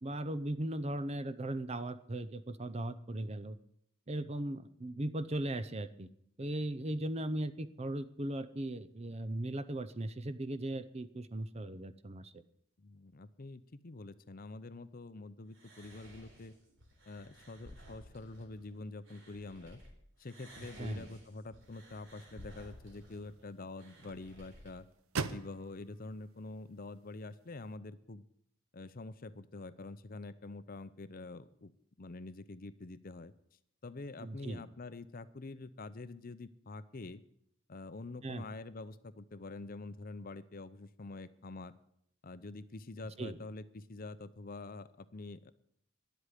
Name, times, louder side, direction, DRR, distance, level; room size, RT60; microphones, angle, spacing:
voice 1, 0.0-3.6 4.1-6.1 6.4-12.3 20.8-21.1 34.2-34.6 38.2-38.4 43.2-43.4, right 1 dB, 30° right, 13 dB, 0.6 m, -38 dB
voice 2, 12.8-16.5 17.1-19.8 20.2-24.9 25.3-28.2 28.7-31.7 32.0-33.3 33.8-37.2 37.7-41.8 42.2-45.5, left 3 dB, 40° left, 14 dB, 0.6 m, -46 dB
sound 1, 15.5-19.9 20.2-24.7, equal, 60° right, 3.9 m, -56 dB
sound 2, 21.6-27.8, right 4 dB, 80° right, 0.8 m, -46 dB
11.0 x 8.2 x 10.0 m, 0.72 s
head